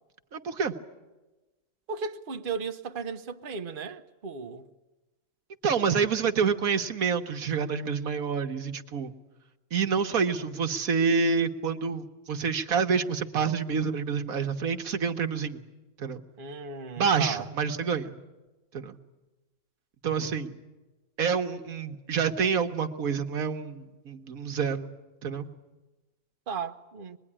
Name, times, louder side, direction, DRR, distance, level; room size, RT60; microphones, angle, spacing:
voice 1, 0.3-0.7 5.6-9.1 9.7-15.6 16.0-16.2 17.0-18.2 18.7-19.0 20.0-20.6 21.2-24.9 25.2-25.5, right 6 dB, 85° right, 1.7 m, -27 dB
voice 2, 1.9-4.7 16.4-17.5 26.5-27.2, right 5 dB, 40° right, 1.2 m, -35 dB
25.0 x 21.0 x 10.0 m
omnidirectional pair, 1.5 m